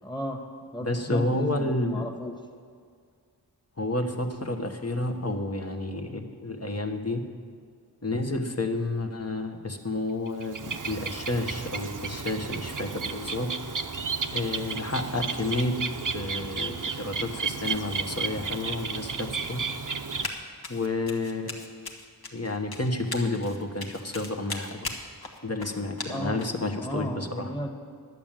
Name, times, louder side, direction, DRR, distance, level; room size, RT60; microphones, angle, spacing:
voice 1, 0.0-0.4 0.7-2.3 26.1-26.4 26.8-27.8, equal, 10° left, 1 dB, 1.5 m, -34 dB
voice 2, 0.8-2.1 3.8-7.2 8.0-13.7 14.3-15.7 16.1-19.6 20.7-21.9 22.3-24.9 25.4-27.5, left 2 dB, 40° left, 4 dB, 1.2 m, -30 dB
Bird, 10.3-20.3, right 5 dB, 50° right, 0.7 m, -33 dB
Run, 20.2-20.4 20.6-26.6, left 3 dB, 70° left, 1.4 m, -38 dB
11.0 x 7.4 x 8.9 m, 2.1 s
wide cardioid pair, 55°, 39 cm